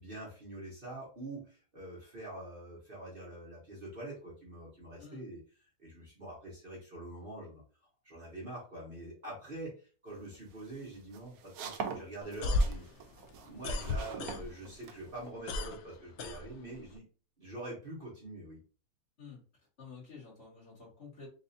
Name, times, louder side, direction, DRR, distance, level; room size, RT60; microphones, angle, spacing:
voice 1, 0.0-5.4 5.8-7.6 8.0-12.8 13.4-17.1 17.4-18.6, right 1 dB, 40° right, -5 dB, 1.2 m, -45 dB
sound 1, 10.2-15.3, right 6 dB, 75° right, 1.0 m, -44 dB
sound 2, 12.2-14.8 15.1-17.0, left 2 dB, 70° left, 0.6 m, -34 dB
voice 2, 19.8-21.3, left 5 dB, 40° left, -5 dB, 1.9 m, -50 dB
4.1 x 2.6 x 2.7 m, 0.37 s
omnidirectional pair, 1.7 m